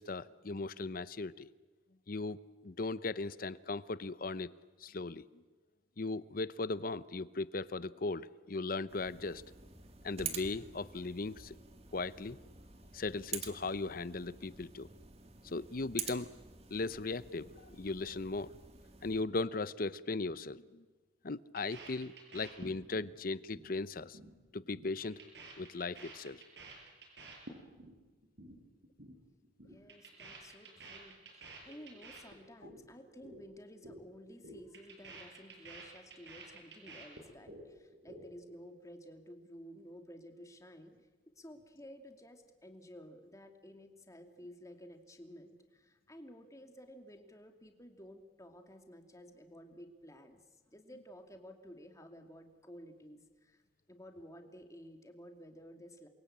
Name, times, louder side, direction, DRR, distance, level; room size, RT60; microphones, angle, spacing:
voice 1, 0.0-1.5 2.1-2.4 2.6-4.5 4.8-5.2 6.0-9.4 10.0-11.6 11.9-12.4 12.9-14.9 15.4-16.3 16.7-18.5 19.0-20.8 21.2-24.2 24.5-25.2 25.6-26.4, left 3 dB, 55° left, 16 dB, 0.8 m, -38 dB
sound 1, 8.9-19.2, right 6 dB, 35° right, 2.2 m, -48 dB
sound 2, 21.6-23.1 23.4-23.7 24.0-24.3 24.6-28.0 28.2-28.6 28.8-29.2 29.4-32.8 33.1-33.4 33.7-34.0 34.3-37.6 37.9-38.6, right 3 dB, 70° right, 7.6 m, -51 dB
voice 2, 29.6-40.9 41.3-53.6 53.9-56.1, equal, 20° left, 4 dB, 2.6 m, -53 dB
28.5 x 23.0 x 8.8 m, 1.3 s
head